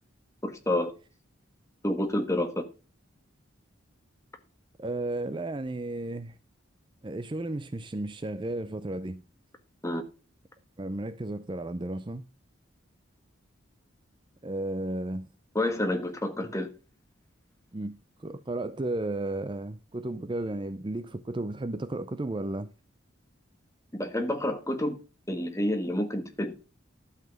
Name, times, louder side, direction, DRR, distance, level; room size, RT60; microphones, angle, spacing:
voice 1, 0.4-0.9 1.8-2.7 9.8-10.0 15.5-16.7 23.9-25.0 25.3-26.5, left 1 dB, 15° left, 1.5 m, -29 dB
voice 2, 4.8-6.4 7.0-9.2 10.8-12.2 14.4-15.3 16.4-16.5 17.7-22.7, right 2 dB, 25° right, 0.5 m, -33 dB
12.0 x 5.8 x 6.4 m
head